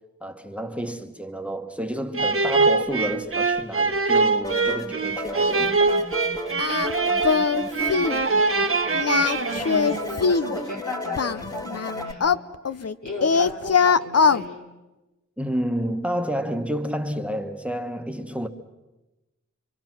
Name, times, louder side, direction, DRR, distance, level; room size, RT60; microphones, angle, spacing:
voice 1, 0.2-5.9 15.4-18.5, equal, 5° right, 1.4 m, -30 dB
sound 1, 2.1-10.2, right 3 dB, 45° right, 1.2 m, -23 dB
sound 2, 4.4-12.1, left 1 dB, 10° left, 1.6 m, -34 dB
Singing, 6.6-6.9 7.2-7.6 7.9-8.2 8.9-10.5 11.2-12.9 13.2-14.4, left 5 dB, 55° left, 0.7 m, -21 dB
voice 2, 8.1-12.4 12.8-14.6, left 2 dB, 80° left, 4.5 m, -36 dB
26.5 x 25.0 x 6.1 m
wide cardioid pair, 70°, 29 cm